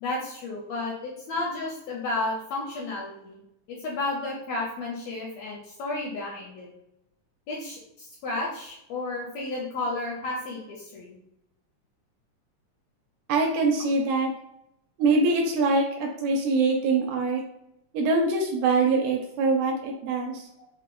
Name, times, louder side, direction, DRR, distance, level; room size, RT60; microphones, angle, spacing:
voice 1, 0.0-3.4 3.7-6.7 7.5-11.2 19.8-20.0 20.6-20.7, left 2 dB, 80° left, -2 dB, 1.5 m, -32 dB
voice 2, 13.3-14.3 15.0-17.4 17.9-20.4, right 3 dB, 85° right, 1 dB, 1.9 m, -23 dB
4.7 x 2.0 x 2.2 m, 0.80 s
omnidirectional pair, 3.3 m